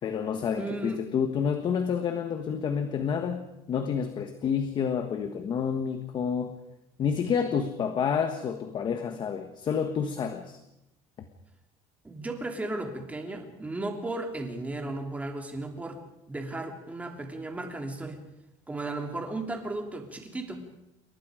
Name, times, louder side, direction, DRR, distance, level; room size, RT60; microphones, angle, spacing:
voice 1, 0.0-6.6 7.0-10.6, left 7 dB, 35° left, 8 dB, 1.5 m, -29 dB
voice 2, 0.6-1.0 12.0-16.0 16.3-18.2 18.7-20.6, right 2 dB, 10° right, 4 dB, 3.1 m, -35 dB
28.5 x 23.5 x 5.1 m, 0.87 s
cardioid pair, 175°, 14 cm